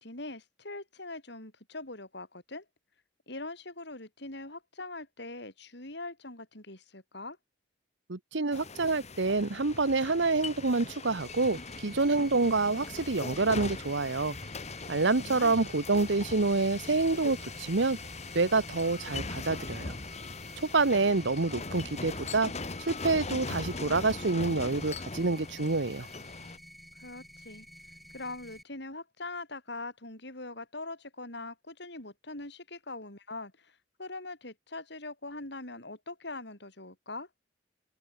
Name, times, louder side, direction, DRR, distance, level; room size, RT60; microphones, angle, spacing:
voice 1, 0.0-2.7 3.3-7.4 15.2-15.6 27.0-27.7 28.1-37.3, left 2 dB, 65° left, 7.0 m, -42 dB
voice 2, 8.1-14.4 14.9-18.0 18.3-20.0 20.6-22.5 22.8-26.1, right 3 dB, 70° right, 1.1 m, -27 dB
sound 1, 8.5-26.6, left 3 dB, 35° left, 1.8 m, -40 dB
sound 2, 11.2-28.6, equal, ahead, 3.7 m, -52 dB
open air
head